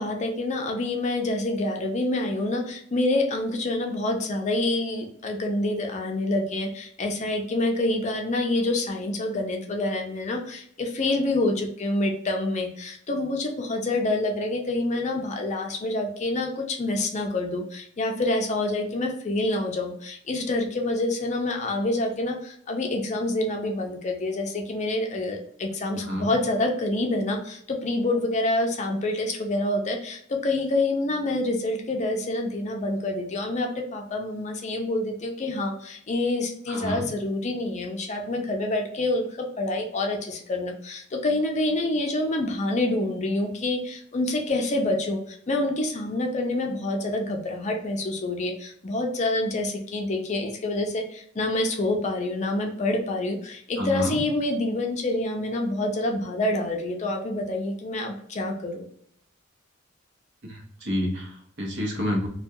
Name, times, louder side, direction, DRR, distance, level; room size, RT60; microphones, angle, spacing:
voice 1, 0.0-58.9, left 2 dB, 35° left, 2 dB, 0.5 m, -27 dB
voice 2, 25.9-26.3 36.7-37.1 53.8-54.2 60.4-62.3, equal, 60° right, 0 dB, 0.8 m, -29 dB
2.3 x 2.2 x 2.7 m, 0.65 s
head